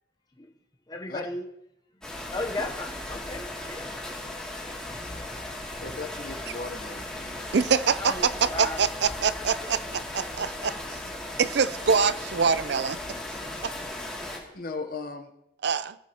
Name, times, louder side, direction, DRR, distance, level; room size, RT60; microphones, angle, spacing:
voice 1, 0.9-1.5 2.3-4.0 5.1-5.2 7.4-7.5 8.0-8.8 10.4-10.8, left 2 dB, 20° left, 0.8 m, -36 dB
sound 1, 2.0-14.4, left 1 dB, 5° left, 2.4 m, -37 dB
voice 2, 5.8-7.4 14.5-15.3, left 3 dB, 50° left, 0.9 m, -37 dB
voice 3, 7.5-8.1 8.6-10.8 11.4-13.0 13.6-13.7 15.6-16.0, right 6 dB, 60° right, 0.5 m, -25 dB
21.0 x 8.1 x 2.9 m
head